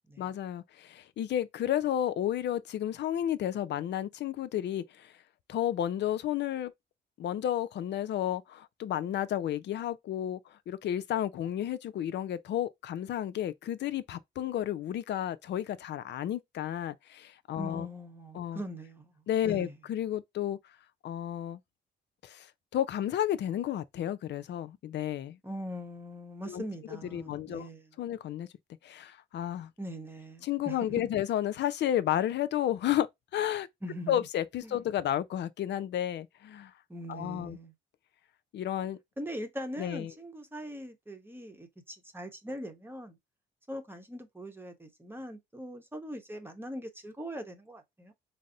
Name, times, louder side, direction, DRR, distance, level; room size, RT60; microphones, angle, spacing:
voice 1, 0.2-5.1 5.5-6.7 7.2-17.9 18.3-18.6 19.3-20.6 21.0-21.6 22.2-25.4 26.5-26.6 26.9-27.7 28.0-28.5 28.8-29.7 30.4-33.1 33.3-33.7 34.1-36.7 37.1-37.6 38.5-39.0 39.8-40.1, left 11 dB, 60° left, 0.5 m, -32 dB
voice 2, 17.6-19.1 19.4-19.7 25.4-27.9 29.8-31.1 33.8-34.3 34.6-34.8 36.9-37.7 39.2-43.2 43.7-48.1, equal, 10° right, 0.9 m, -41 dB
4.0 x 2.0 x 3.7 m
cardioid pair, 90°, 20 cm